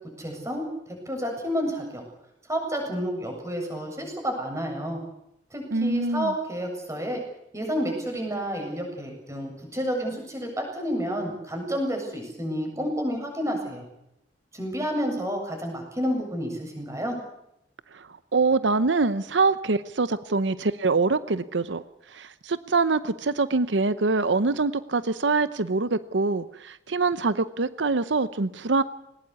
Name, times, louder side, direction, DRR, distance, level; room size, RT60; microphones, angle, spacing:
voice 1, 0.2-2.0 2.5-5.0 5.5-7.2 7.5-13.8 14.5-17.2, equal, 15° right, 2 dB, 7.6 m, -30 dB
voice 2, 5.7-6.3 17.9-21.8 22.1-28.8, right 3 dB, 85° right, 14 dB, 0.8 m, -24 dB
20.5 x 19.5 x 8.4 m, 0.83 s
head